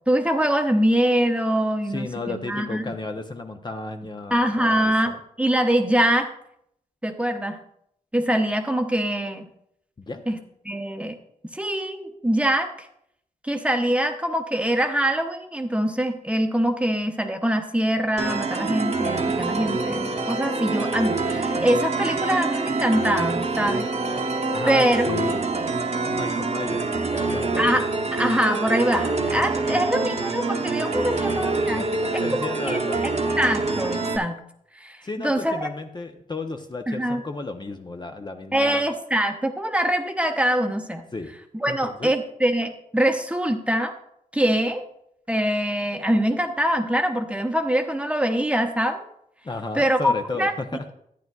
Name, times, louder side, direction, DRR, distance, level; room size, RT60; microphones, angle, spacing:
voice 1, 0.1-2.9 4.3-6.3 7.0-7.6 8.1-9.5 10.3-10.4 10.6-11.1 11.5-12.9 13.4-23.9 24.6-25.1 27.6-31.9 32.1-32.2 32.7-32.8 33.4-34.4 34.8-35.7 36.9-37.2 38.5-41.0 41.5-43.9 44.3-44.8 45.3-49.0 49.8-50.5, right 1 dB, 10° right, 5 dB, 0.8 m, -23 dB
voice 2, 1.9-5.2 10.0-10.2 24.5-25.5 26.1-27.6 30.9-31.4 31.7-33.0 35.0-38.8 41.1-41.3 41.7-42.1 49.4-50.9, left 3 dB, 30° left, 5 dB, 0.7 m, -33 dB
sound 1, 18.2-34.2, right 3 dB, 50° right, 0.9 m, -26 dB
11.5 x 9.2 x 2.3 m, 0.74 s
cardioid pair, 70°, 14 cm